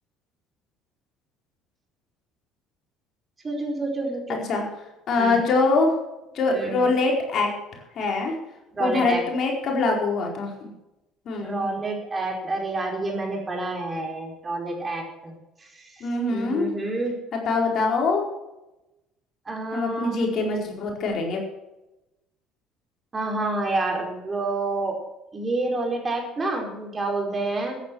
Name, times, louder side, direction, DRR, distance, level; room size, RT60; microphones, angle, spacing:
voice 1, 3.4-4.5 5.2-5.4 6.5-7.0 8.7-9.2 11.4-17.1 19.5-20.2 23.1-25.0 25.3-27.8, right 2 dB, 25° right, 1 dB, 4.6 m, -29 dB
voice 2, 5.1-6.0 6.3-7.5 8.0-8.4 8.8-10.7 11.3-11.7 16.0-16.7 17.3-18.2 19.7-21.4, left 3 dB, 55° left, 0 dB, 4.5 m, -23 dB
14.0 x 10.5 x 6.2 m, 0.96 s
hypercardioid pair, 65°, 0 cm